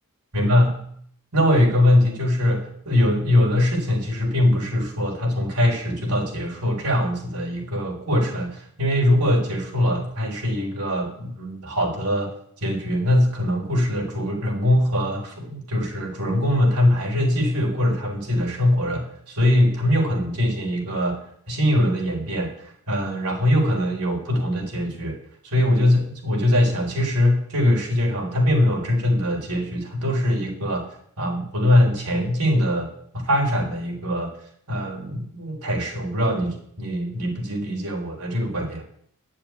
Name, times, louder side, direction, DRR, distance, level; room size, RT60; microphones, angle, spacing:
voice 1, 0.3-0.7 1.3-12.3 12.6-21.2 21.5-25.2 25.4-30.9 31.2-32.9 33.1-34.3 34.7-38.8, left 1 dB, 85° right, 0 dB, 4.0 m, -22 dB
8.7 x 8.4 x 9.5 m, 0.66 s
head